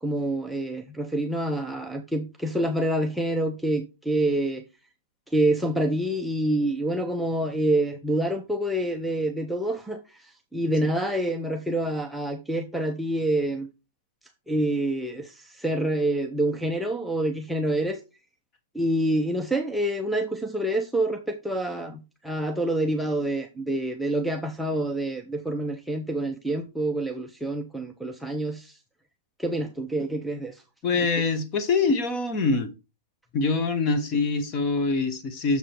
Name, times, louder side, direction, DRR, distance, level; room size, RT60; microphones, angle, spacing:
voice 1, 0.0-4.7 5.3-13.7 14.5-18.0 18.7-28.8 29.4-30.6 31.0-31.1, right 1 dB, ahead, 0.5 m, -27 dB
voice 2, 30.8-32.7 33.3-35.6, left 4 dB, 25° left, 1.1 m, -24 dB
6.8 x 4.9 x 4.4 m
supercardioid pair, 165°, 0 cm